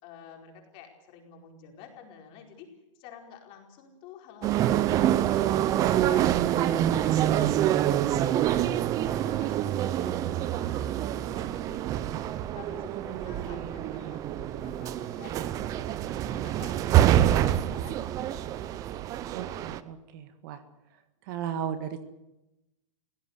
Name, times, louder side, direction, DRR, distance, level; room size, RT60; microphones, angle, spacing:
voice 1, 0.0-2.7 2.9-6.2 6.5-8.6 9.0-18.2, left 6 dB, 30° left, 3 dB, 4.8 m, -49 dB
sound 1, 4.4-19.8, right 12 dB, 20° right, 0.7 m, -26 dB
voice 2, 19.3-20.6 21.3-22.0, right 9 dB, 40° right, 10 dB, 1.8 m, -36 dB
24.5 x 17.0 x 8.2 m, 0.93 s
hypercardioid pair, 165°, 17 cm